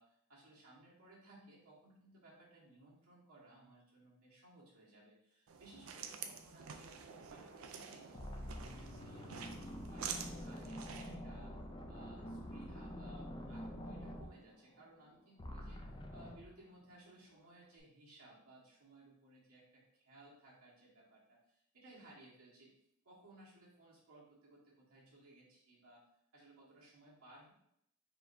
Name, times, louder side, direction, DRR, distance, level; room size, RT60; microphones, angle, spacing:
voice 1, 0.0-11.5 11.9-22.7 23.0-26.1 26.3-27.5, right 1 dB, 85° right, -5 dB, 1.5 m, -61 dB
sound 1, 5.5-11.2, right 6 dB, 70° right, 0.4 m, -48 dB
sound 2, 7.5-7.7 8.1-15.1 15.4-16.5, equal, 20° left, 0.4 m, -47 dB
4.7 x 3.1 x 2.6 m, 0.75 s
head